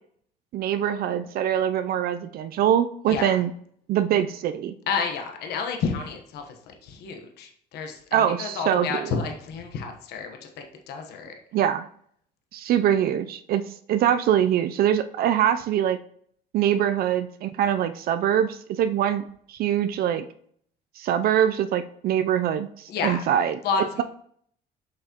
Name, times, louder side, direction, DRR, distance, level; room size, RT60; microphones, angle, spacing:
voice 1, 0.5-3.5 3.9-4.7 8.1-9.1 11.5-11.9 12.5-16.0 16.5-19.2 19.5-20.2 21.0-23.5, right 10 dB, 65° right, 9 dB, 0.4 m, -23 dB
voice 2, 4.9-11.3 22.9-23.2 23.6-24.0, left 5 dB, 75° left, 4 dB, 1.1 m, -30 dB
7.7 x 5.9 x 2.9 m, 0.62 s
cardioid pair, 110°, 17 cm